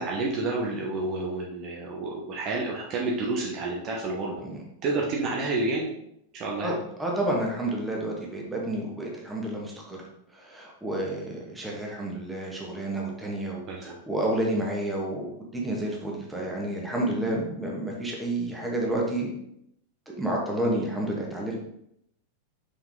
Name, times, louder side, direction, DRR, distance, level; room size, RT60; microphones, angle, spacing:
voice 1, 0.0-4.4 4.8-5.9 6.3-6.8 13.7-14.0 20.7-20.8, right 2 dB, 35° right, -3 dB, 1.1 m, -29 dB
voice 2, 7.0-10.0 10.3-19.3 20.1-21.6, right 1 dB, 5° right, -2 dB, 1.7 m, -30 dB
5.7 x 5.3 x 3.7 m, 0.77 s
figure-of-eight pair, 90°, 0 cm